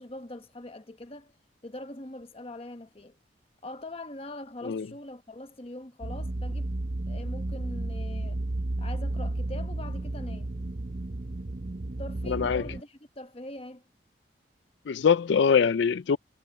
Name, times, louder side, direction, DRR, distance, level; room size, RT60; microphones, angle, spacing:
voice 1, 0.0-1.4 1.6-3.2 3.6-6.8 7.1-8.4 8.8-10.5 12.0-13.8, left 1 dB, 35° left, 1.2 m, -42 dB
sound 1, 6.0-12.8, right 2 dB, 50° right, 0.7 m, -33 dB
voice 2, 12.3-12.7 14.9-16.2, left 6 dB, 85° left, 0.4 m, -23 dB
head